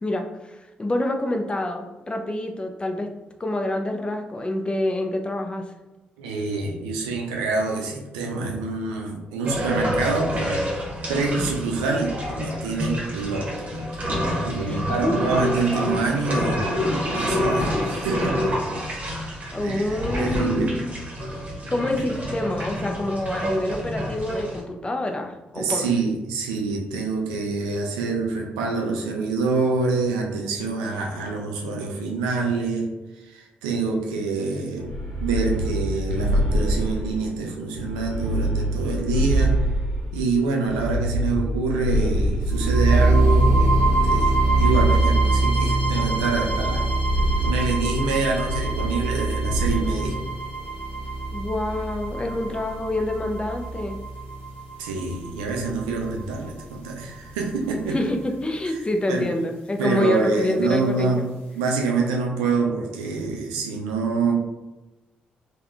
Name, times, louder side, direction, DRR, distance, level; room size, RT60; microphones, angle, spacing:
voice 1, 0.0-3.1 3.4-5.7 14.6-15.3 19.5-21.0 21.7-25.9 51.3-54.0 57.9-61.3, left 1 dB, 20° left, 4 dB, 0.4 m, -27 dB
voice 2, 6.2-10.6 11.1-14.0 14.4-18.5 18.9-19.0 19.6-19.9 20.2-20.7 25.6-32.9 33.3-34.9 35.2-39.6 40.1-43.7 44.0-46.9 47.4-50.2 54.8-58.0 58.7-58.8 59.1-59.2 59.8-61.2 61.5-64.3, right 4 dB, 75° right, 0 dB, 0.4 m, -26 dB
sound 1, 9.4-24.6, equal, 30° right, 1.0 m, -27 dB
sound 2, 34.8-37.2 37.7-40.2 40.6-42.8 43.3-45.2 45.8-46.8 47.0-47.5 48.4-49.1 49.4-49.9, equal, 80° left, 0.8 m, -26 dB
sound 3, 42.5-56.5, right 2 dB, 40° left, 1.1 m, -23 dB
3.5 x 2.1 x 2.3 m, 1.1 s
figure-of-eight pair, 40°, 5 cm